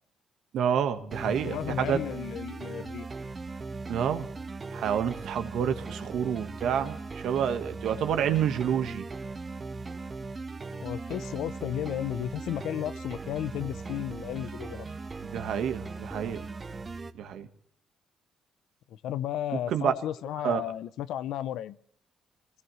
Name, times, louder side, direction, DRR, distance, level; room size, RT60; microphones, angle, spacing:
voice 1, 0.5-2.0 3.9-4.3 4.7-9.1 15.2-16.5 17.1-17.5 19.5-19.9 20.4-20.6, right 8 dB, 80° right, 8 dB, 1.4 m, -28 dB
sound 1, 1.1-17.1, right 3 dB, 30° right, 1.1 m, -39 dB
voice 2, 1.2-3.1 10.8-14.9 18.9-21.8, left 11 dB, 85° left, 16 dB, 0.6 m, -34 dB
24.5 x 18.5 x 3.2 m, 0.66 s
cardioid pair, 90°, 0 cm